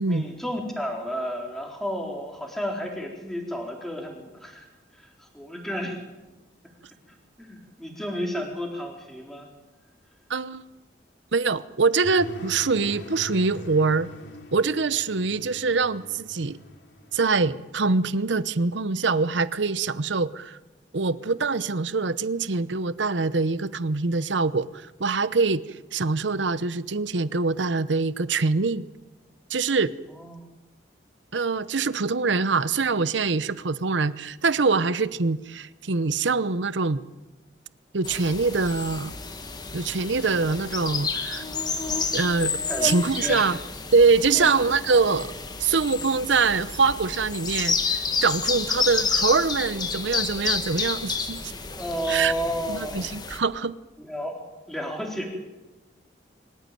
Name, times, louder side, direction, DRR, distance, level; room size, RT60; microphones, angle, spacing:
voice 1, 0.0-4.7 4.9-6.0 7.4-9.5 30.1-30.5 40.3-40.6 42.7-43.5 44.3-44.5 51.7-53.1 54.0-54.4 54.7-55.4, equal, ahead, 0 dB, 4.1 m, -32 dB
voice 2, 10.3-10.6 11.3-14.1 14.5-16.6 17.1-20.6 20.9-25.6 25.9-28.8 29.5-29.9 31.3-37.0 37.9-39.1 39.7-41.4 42.1-43.6 43.9-45.3 45.6-51.5 52.1-52.3 52.7-53.7, right 4 dB, 75° right, 16 dB, 0.8 m, -24 dB
sound 1, 12.0-17.5, equal, 65° left, 3.1 m, -41 dB
sound 2, 38.0-53.4, left 5 dB, 20° left, 1.6 m, -30 dB
25.5 x 15.0 x 9.2 m, 1.1 s
head